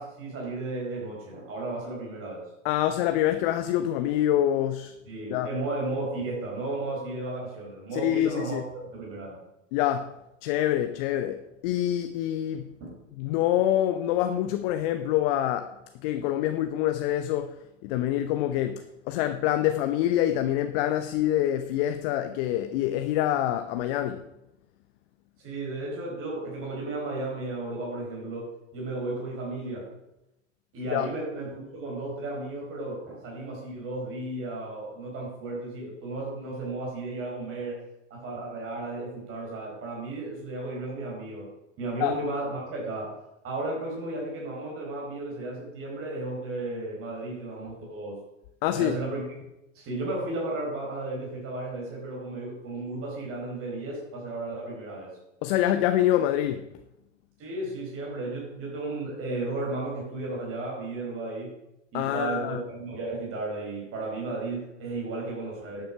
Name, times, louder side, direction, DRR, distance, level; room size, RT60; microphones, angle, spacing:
voice 1, 0.0-2.4 5.1-9.4 12.8-13.0 25.4-29.9 30.7-37.8 38.1-41.5 41.8-43.1 43.4-48.2 48.7-49.2 49.7-55.1 57.4-61.5 61.9-65.8, right 2 dB, 35° right, 4.5 m, -34 dB
voice 2, 2.6-4.9 5.3-5.5 7.9-8.6 9.7-10.1 10.4-12.7 13.2-15.7 16.0-17.6 17.8-24.2 30.9-31.1 42.0-42.2 48.6-49.0 55.4-56.7 61.9-62.6, left 12 dB, 45° left, 0.8 m, -26 dB
11.5 x 7.7 x 5.9 m
hypercardioid pair, 95°, 38 cm